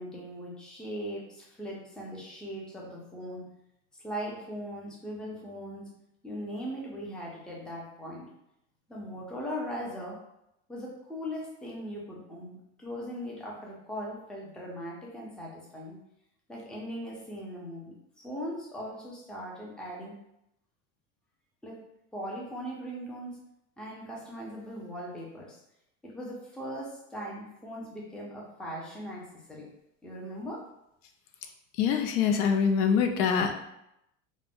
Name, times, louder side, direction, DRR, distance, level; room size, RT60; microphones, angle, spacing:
voice 1, 0.0-3.5 4.0-5.9 6.2-8.3 8.9-10.2 10.7-16.0 16.5-20.1 21.6-21.8 22.1-23.4 23.8-25.6 26.0-29.7 30.0-30.6, equal, ahead, -4 dB, 0.5 m, -39 dB
voice 2, 31.8-33.5, left 6 dB, 75° left, 5 dB, 0.5 m, -24 dB
2.4 x 2.1 x 3.4 m, 0.81 s
cardioid pair, 140°, 36 cm